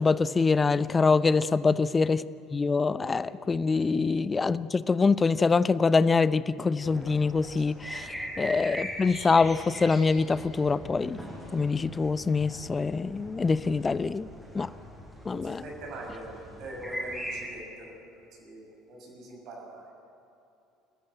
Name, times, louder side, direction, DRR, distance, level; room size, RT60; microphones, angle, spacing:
voice 1, 0.0-2.2 2.5-11.2 11.5-14.3 14.5-14.7 15.3-15.6, left 4 dB, 25° left, 17 dB, 0.7 m, -25 dB
sound 1, 6.8-17.5, equal, 5° left, 6.8 m, -41 dB
voice 2, 15.3-19.9, right 1 dB, 50° right, 0 dB, 6.6 m, -43 dB
29.0 x 14.5 x 9.2 m, 2.8 s
figure-of-eight pair, 60°, 0 cm